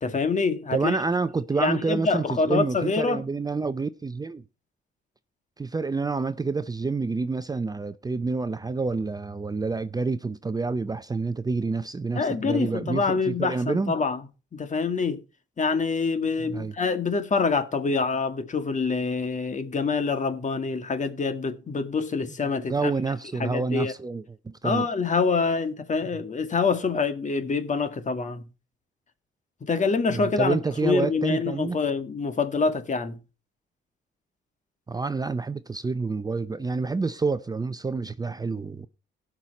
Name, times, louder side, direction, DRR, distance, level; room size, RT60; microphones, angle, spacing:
voice 1, 0.0-1.0 1.6-3.2 12.1-14.2 14.5-15.2 15.6-22.9 23.4-23.9 24.6-28.4 29.6-33.2, left 4 dB, 40° left, 1.9 m, -26 dB
voice 2, 0.7-4.4 5.6-13.9 16.4-16.7 22.5-24.9 30.1-31.8 34.9-38.9, right 4 dB, 20° right, 0.7 m, -28 dB
17.5 x 6.0 x 4.2 m
cardioid pair, 90°, 20 cm